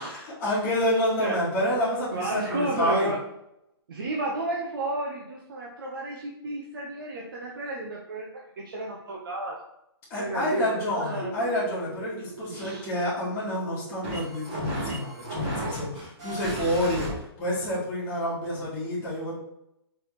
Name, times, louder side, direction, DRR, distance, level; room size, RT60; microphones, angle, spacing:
voice 1, 0.0-3.1 10.1-19.3, left 1 dB, 15° left, -9 dB, 1.4 m, -28 dB
voice 2, 2.1-3.2 3.9-9.6 10.2-11.4 12.5-12.9, right 2 dB, 55° right, -2 dB, 0.7 m, -32 dB
sound 1, 11.2-17.1, right 1 dB, 15° right, 1.7 m, -36 dB
4.4 x 3.4 x 3.1 m, 0.82 s
hypercardioid pair, 170°, 14 cm